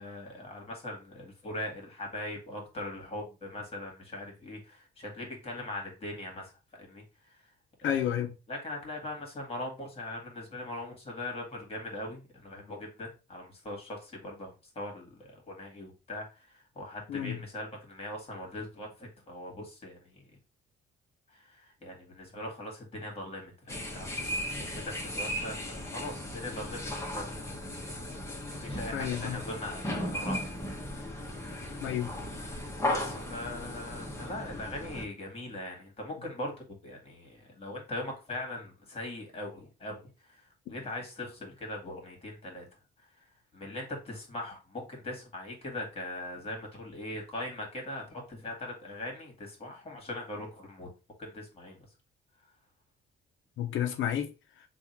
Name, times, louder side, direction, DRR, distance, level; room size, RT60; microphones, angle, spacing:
voice 1, 0.0-7.0 7.4-7.5 7.8-8.0 8.5-20.2 21.3-28.1 28.6-30.4 31.1-31.2 32.8-40.0 40.3-42.7 43.5-50.9 51.2-51.8, left 1 dB, 30° left, 1.9 m, -41 dB
voice 2, 7.8-8.3 17.1-17.4 28.9-29.4 31.8-32.1 53.6-54.3, left 10 dB, 75° left, 0.7 m, -30 dB
sound 1, 23.7-35.1, left 1 dB, 15° left, 1.2 m, -36 dB
3.5 x 2.5 x 4.3 m
cardioid pair, 90°, 20 cm